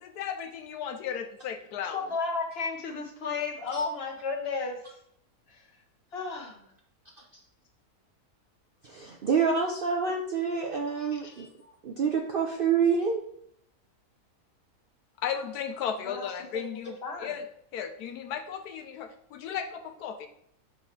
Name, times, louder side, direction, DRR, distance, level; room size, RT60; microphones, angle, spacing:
voice 1, 0.0-2.1 15.2-17.5 17.7-20.3, left 8 dB, 90° left, 8 dB, 1.2 m, -35 dB
voice 2, 1.9-4.8 5.5-5.6 6.1-6.7 10.9-11.7 16.1-16.3 16.5-16.6 17.0-17.4, left 4 dB, 45° left, 3 dB, 1.1 m, -34 dB
voice 3, 8.8-11.5 11.8-13.2, right 5 dB, 60° right, 2 dB, 0.5 m, -27 dB
5.5 x 3.9 x 4.4 m, 0.69 s
omnidirectional pair, 1.6 m